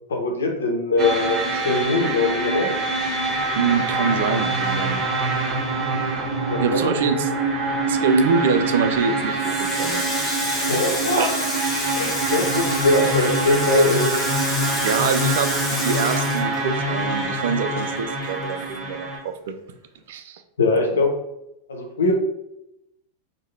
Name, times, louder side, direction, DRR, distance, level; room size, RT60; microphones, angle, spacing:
voice 1, 0.1-1.4 1.6-2.7 6.5-6.9 10.7-11.5 12.0-14.1 20.6-21.1 21.7-22.1, left 2 dB, 65° left, 2 dB, 0.8 m, -21 dB
sound 1, 1.0-19.2, right 2 dB, 25° right, 0.8 m, -25 dB
voice 2, 3.6-5.0 6.6-7.3 7.9-10.4 11.2-11.3 14.8-15.5 15.8-19.5 20.1-20.4, right 5 dB, 55° right, 8 dB, 0.3 m, -24 dB
Water tap faucet, 9.4-17.2 17.5-18.9, left 1 dB, 15° left, 1.1 m, -30 dB
3.5 x 2.1 x 3.3 m, 0.86 s
figure-of-eight pair, 90°, 0 cm